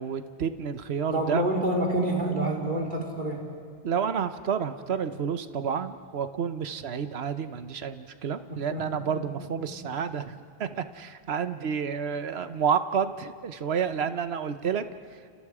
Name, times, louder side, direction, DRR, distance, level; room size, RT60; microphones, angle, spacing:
voice 1, 0.0-1.4 3.8-10.3 10.6-14.8, right 7 dB, 80° right, 10 dB, 1.2 m, -30 dB
voice 2, 1.1-3.4 8.5-8.8 9.4-9.5, right 1 dB, 50° right, -1 dB, 4.0 m, -27 dB
30.0 x 29.5 x 5.0 m, 2.3 s
omnidirectional pair, 1.1 m